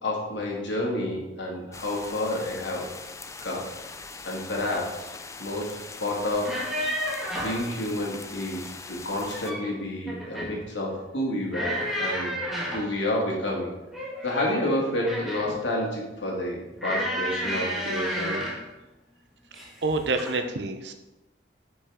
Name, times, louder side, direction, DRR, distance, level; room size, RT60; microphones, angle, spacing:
voice 1, 0.0-2.9 3.4-3.7 4.2-5.1 5.4-6.7 7.3-12.3 12.7-13.7 14.2-18.4, left 1 dB, 80° left, -2 dB, 2.1 m, -29 dB
sound 1, 1.7-9.5, left 4 dB, 15° left, 0.4 m, -42 dB
sound 2, 6.4-7.7 9.1-9.7 10.1-10.6 11.5-12.9 13.9-15.6 16.8-18.7 19.5-19.8 20.2-20.4, equal, ahead, 1.5 m, -31 dB
voice 2, 19.5-20.9, right 3 dB, 65° right, 7 dB, 0.8 m, -28 dB
8.9 x 5.3 x 3.7 m, 1.0 s
head